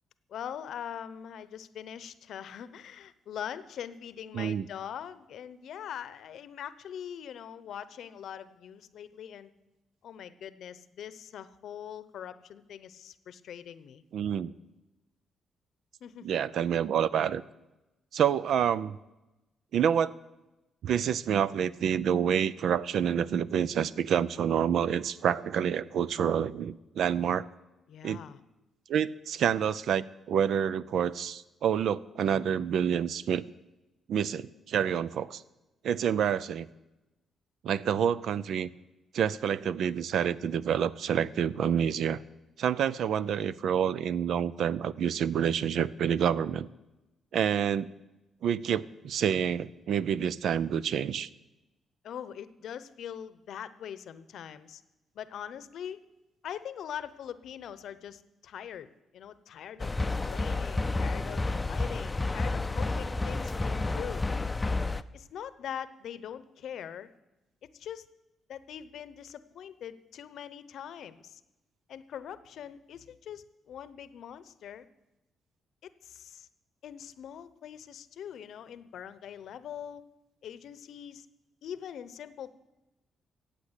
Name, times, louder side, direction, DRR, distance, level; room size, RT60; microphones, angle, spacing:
voice 1, 0.3-9.5 10.0-14.0 16.0-16.3 27.9-28.4 52.0-54.8 55.1-56.0 56.4-64.3 65.1-67.1 67.7-68.1 68.5-71.4 71.9-74.9 75.8-76.5 76.8-80.0 80.4-81.3 81.6-82.5, left 9 dB, 75° left, 15 dB, 0.8 m, -42 dB
voice 2, 4.3-4.7 14.1-14.5 16.2-17.4 18.1-19.0 19.7-20.1 20.8-27.5 28.0-28.2 28.9-33.4 34.1-35.4 35.8-36.7 37.6-38.7 39.1-42.2 42.6-46.7 47.3-47.9 48.4-51.3, right 8 dB, 70° right, 18 dB, 0.5 m, -28 dB
sound 1, 59.8-65.0, left 3 dB, 20° left, 0.5 m, -30 dB
14.5 x 8.5 x 8.2 m, 1.0 s
cardioid pair, 95°, 0 cm